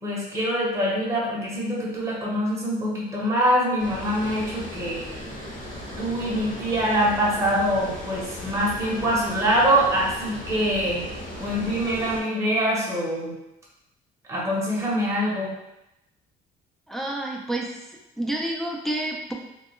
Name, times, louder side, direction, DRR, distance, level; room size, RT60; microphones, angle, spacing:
voice 1, 0.0-5.0 6.0-11.1 11.4-13.3 14.3-15.5, equal, 15° right, -6 dB, 0.7 m, -24 dB
Water, 3.8-12.2, left 1 dB, 50° left, 0.9 m, -37 dB
voice 2, 16.9-17.7 18.2-19.3, right 1 dB, ahead, -1 dB, 0.3 m, -29 dB
2.2 x 2.0 x 3.0 m, 0.91 s
cardioid pair, 110°, 17 cm